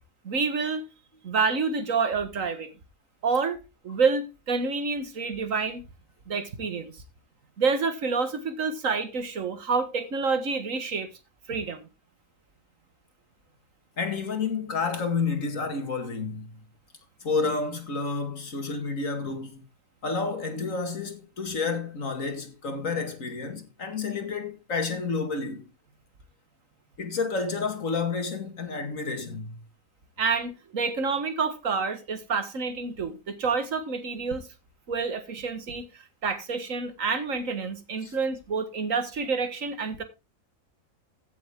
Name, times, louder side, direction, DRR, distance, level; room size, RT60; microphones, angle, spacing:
voice 1, 0.2-0.8 1.2-2.7 3.2-3.6 3.8-5.8 6.3-6.9 7.6-11.1 11.5-11.9 30.2-34.5 34.9-40.0, right 4 dB, 70° right, 1.9 m, -28 dB
voice 2, 14.0-16.5 17.2-19.6 20.0-25.6 27.0-29.6 38.0-38.1, left 4 dB, 70° left, 2.5 m, -30 dB
15.5 x 7.2 x 3.6 m
omnidirectional pair, 1.4 m